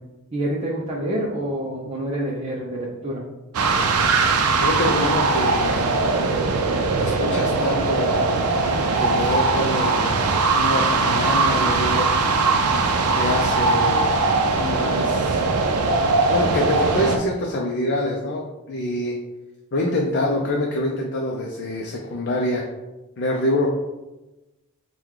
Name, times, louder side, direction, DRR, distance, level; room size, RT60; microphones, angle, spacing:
voice 1, 0.3-3.2, right 1 dB, 30° right, -4 dB, 0.5 m, -27 dB
sound 1, 3.5-17.2, right 3 dB, 85° right, 0.5 m, -20 dB
voice 2, 4.6-5.9 7.0-8.2 9.0-10.1 10.5-12.1 13.1-14.0 14.6-15.4 16.3-19.2 19.7-22.6 23.2-23.7, left 1 dB, 50° left, 0 dB, 0.5 m, -25 dB
4.6 x 2.2 x 3.6 m, 1.1 s
head